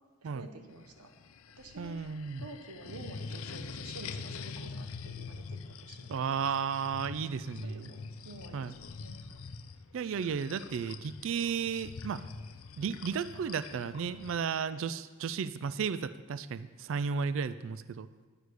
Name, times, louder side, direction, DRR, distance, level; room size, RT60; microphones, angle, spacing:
voice 1, 0.2-1.1 1.6-6.4 7.3-9.4 13.3-13.8, right 2 dB, 85° right, 5 dB, 1.2 m, -50 dB
sound 1, 0.7-14.4, left 5 dB, 70° left, 0.5 m, -45 dB
voice 2, 1.8-2.4 6.1-7.9 8.5-8.7 9.9-12.2 12.8-18.1, right 6 dB, 60° right, 14 dB, 0.3 m, -34 dB
11.5 x 8.0 x 4.8 m, 1.4 s
head